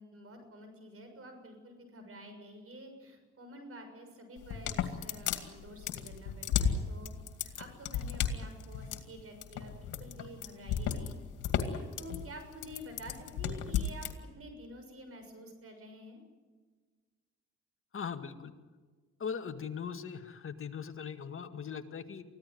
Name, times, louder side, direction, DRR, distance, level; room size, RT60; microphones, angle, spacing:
voice 1, 0.0-7.1 7.4-11.2 11.6-14.1 14.3-16.2, equal, 50° right, 6 dB, 6.6 m, -49 dB
sound 1, 4.4-14.1, left 8 dB, 85° left, 2.4 m, -33 dB
voice 2, 17.9-18.5 19.2-22.2, left 6 dB, 45° left, 7 dB, 2.0 m, -40 dB
24.0 x 15.5 x 9.5 m, 1.4 s
cardioid pair, 90°, 30 cm